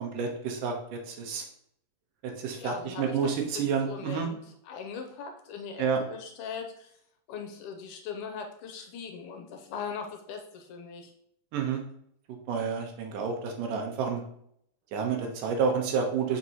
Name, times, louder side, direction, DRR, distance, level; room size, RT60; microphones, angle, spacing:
voice 1, 0.0-1.4 2.4-4.3 5.8-6.0 11.5-11.8 12.5-14.2 14.9-16.4, right 6 dB, 75° right, 2 dB, 2.5 m, -29 dB
voice 2, 2.6-7.0 7.3-11.1, left 6 dB, 80° left, 5 dB, 2.0 m, -40 dB
6.7 x 5.1 x 2.9 m, 0.69 s
omnidirectional pair, 3.8 m